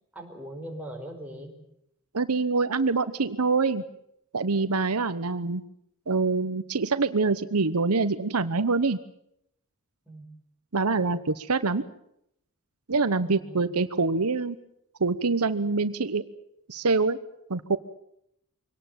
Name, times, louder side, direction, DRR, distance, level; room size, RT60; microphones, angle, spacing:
voice 1, 0.1-1.5 10.1-10.3 13.2-13.7, right 1 dB, 5° right, 1 dB, 4.9 m, -40 dB
voice 2, 2.1-3.8 4.3-5.6 6.1-9.0 10.7-11.8 12.9-14.6 15.0-16.2 16.7-17.2 17.5-17.8, right 4 dB, 75° right, 12 dB, 1.0 m, -25 dB
24.5 x 18.5 x 9.0 m, 0.76 s
head